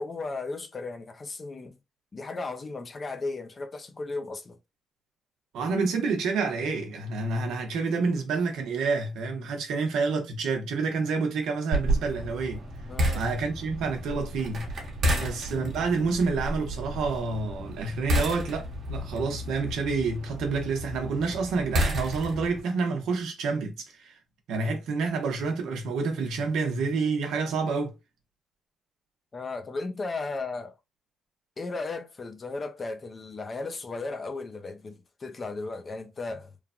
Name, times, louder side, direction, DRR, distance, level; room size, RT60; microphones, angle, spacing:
voice 1, 0.0-1.8 2.1-4.6 12.9-13.2 15.1-15.3 29.3-30.7 31.6-36.5, left 3 dB, 35° left, 0.6 m, -35 dB
voice 2, 5.5-12.6 13.1-14.7 15.2-24.2 24.5-27.9, right 4 dB, 80° right, 0.8 m, -28 dB
sound 1, 11.7-22.6, equal, 55° right, 1.0 m, -31 dB
3.1 x 2.1 x 2.5 m
cardioid pair, 90°, 0 cm